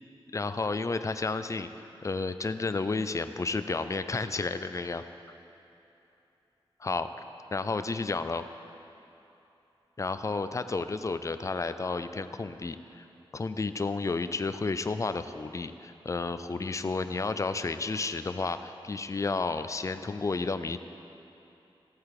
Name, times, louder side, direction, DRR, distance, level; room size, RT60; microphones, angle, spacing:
voice 1, 0.3-1.7 2.0-5.0 6.8-7.1 7.5-8.4 10.0-13.1 13.3-20.8, left 3 dB, 35° left, 10 dB, 0.4 m, -31 dB
14.5 x 8.3 x 4.8 m, 2.9 s
wide cardioid pair, 120°, 10 cm